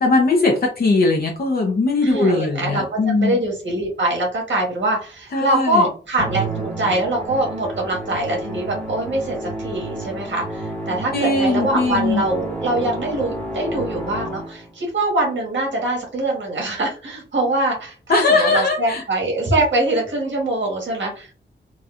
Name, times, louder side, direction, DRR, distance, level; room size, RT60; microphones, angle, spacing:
voice 1, 0.0-3.4 5.3-5.9 11.1-12.2 18.1-19.0, left 3 dB, 55° left, 0 dB, 0.6 m, -19 dB
voice 2, 2.0-21.3, right 2 dB, 75° right, -1 dB, 1.6 m, -23 dB
Musical instrument, 6.2-14.7, right 1 dB, 5° left, 1.1 m, -30 dB
4.1 x 2.3 x 2.4 m, 0.39 s
wide cardioid pair, 160°, 19 cm